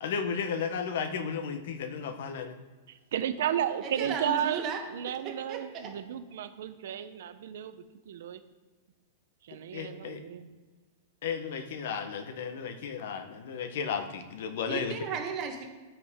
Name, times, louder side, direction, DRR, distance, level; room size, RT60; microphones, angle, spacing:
voice 1, 0.0-2.6 9.7-10.2 11.2-14.9, left 6 dB, 65° left, 9 dB, 0.9 m, -34 dB
voice 2, 2.9-8.4 9.4-10.5, right 10 dB, 75° right, 11 dB, 0.6 m, -33 dB
voice 3, 3.8-4.8 5.2-5.9 14.7-15.6, right 5 dB, 30° right, 3 dB, 1.2 m, -35 dB
8.2 x 7.1 x 3.6 m, 1.3 s
supercardioid pair, 160°, 0 cm